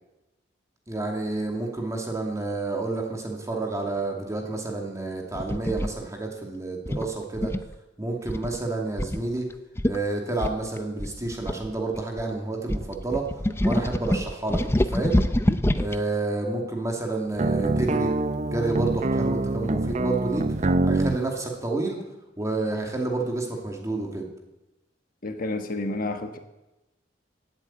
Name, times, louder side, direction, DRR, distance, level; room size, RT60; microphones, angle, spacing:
voice 1, 0.9-7.5 8.0-9.4 9.9-13.2 13.6-15.2 15.7-18.1 18.4-20.4 20.8-22.0 22.4-24.3, right 2 dB, 15° right, 2.6 m, -29 dB
sound 1, 5.3-5.9 6.9-7.7 8.3-8.6 9.0-9.2 9.5-9.6 9.8-10.0 10.4-12.2 12.7-16.0, left 1 dB, 15° left, 0.6 m, -26 dB
sound 2, 17.4-21.2, right 2 dB, 40° right, 0.7 m, -25 dB
voice 2, 25.2-26.4, left 2 dB, 50° left, 1.4 m, -30 dB
16.5 x 8.5 x 8.8 m
head